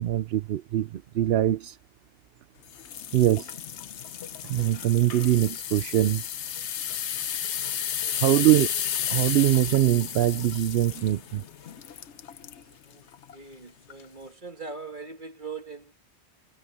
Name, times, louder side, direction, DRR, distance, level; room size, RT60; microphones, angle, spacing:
voice 1, 0.0-1.8 3.1-3.5 4.4-6.2 8.2-8.7 9.1-11.4, right 13 dB, 65° right, 0.8 m, -23 dB
sound 1, 2.7-12.6 13.1-13.4 13.9-14.0, left 9 dB, 80° left, 1.1 m, -33 dB
voice 2, 8.0-8.4 12.8-13.1 13.3-15.9, right 4 dB, 45° right, 2.9 m, -41 dB
omnidirectional pair, 1.2 m